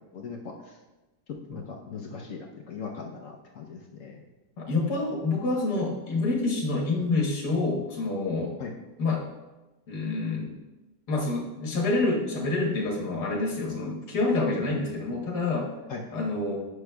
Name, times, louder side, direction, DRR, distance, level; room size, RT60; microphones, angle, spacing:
voice 1, 0.1-0.8 1.5-4.2 8.6-8.7 15.9-16.0, left 5 dB, 65° left, 1 dB, 0.9 m, -39 dB
voice 2, 4.7-8.5 9.0-9.2 9.9-10.6 11.1-15.7 16.1-16.6, left 3 dB, 85° left, -2 dB, 1.8 m, -27 dB
9.6 x 5.9 x 2.2 m, 1.1 s
omnidirectional pair, 1.7 m